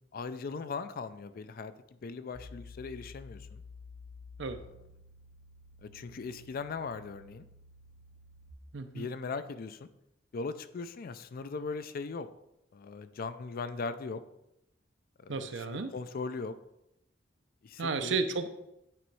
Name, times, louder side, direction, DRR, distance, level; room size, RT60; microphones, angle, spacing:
voice 1, 0.1-1.7 2.0-3.6 4.6-4.7 5.8-7.4 8.9-9.9 10.3-12.3 12.7-14.2 15.2-16.5 17.6-18.2, left 4 dB, 50° left, 12 dB, 0.4 m, -39 dB
sound 1, 2.3-8.5, left 3 dB, 5° left, 1.5 m, -52 dB
voice 2, 8.7-9.1 15.3-15.9 17.8-18.5, right 4 dB, 70° right, 9 dB, 0.6 m, -33 dB
8.9 x 3.1 x 4.7 m, 0.86 s
head